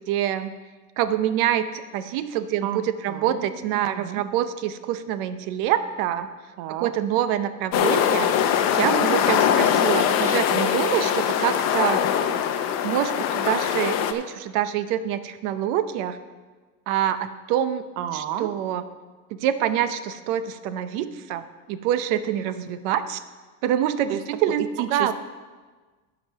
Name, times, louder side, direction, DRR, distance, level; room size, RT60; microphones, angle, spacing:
voice 1, 0.1-0.6 1.0-6.3 6.8-8.3 8.7-12.1 12.8-16.2 16.9-17.9 18.1-18.8 19.3-23.2 23.6-25.1, right 10 dB, 85° right, 11 dB, 0.7 m, -26 dB
voice 2, 2.6-3.5 3.7-4.2 6.6-6.9 9.0-9.2 18.0-18.5 24.1-24.2 24.8-25.1, right 10 dB, 55° right, 10 dB, 0.6 m, -31 dB
sound 1, 7.7-14.1, left 9 dB, 40° left, 0.6 m, -22 dB
12.0 x 5.1 x 5.6 m, 1.3 s
cardioid pair, 170°, 40 cm